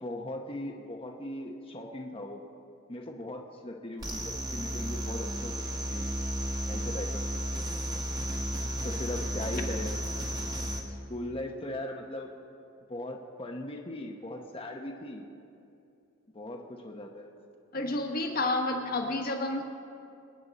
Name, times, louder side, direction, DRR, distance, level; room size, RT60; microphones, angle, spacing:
voice 1, 0.0-2.4 2.9-6.1 6.7-7.3 8.6-9.9 11.1-12.3 12.9-15.2 16.3-17.3, left 1 dB, 25° left, 2 dB, 1.0 m, -39 dB
sound 1, 4.0-10.8, equal, 20° right, 1.5 m, -33 dB
voice 2, 17.7-19.6, left 2 dB, 45° left, 2 dB, 1.5 m, -30 dB
25.5 x 9.7 x 4.2 m, 2.6 s
head